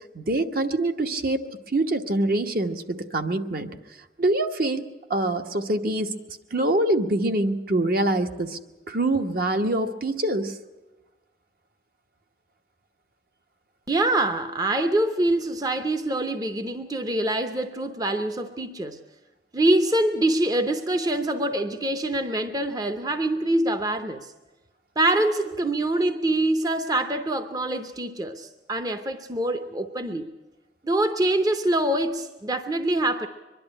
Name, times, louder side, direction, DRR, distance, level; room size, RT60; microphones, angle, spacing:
voice 1, 0.1-3.7 4.2-6.1 6.5-8.6 8.9-10.5, right 1 dB, 55° right, 6 dB, 1.1 m, -25 dB
voice 2, 13.9-19.0 19.5-24.3 25.0-30.3 30.8-33.3, right 1 dB, 20° right, 7 dB, 0.7 m, -25 dB
23.0 x 11.5 x 9.8 m, 1.1 s
head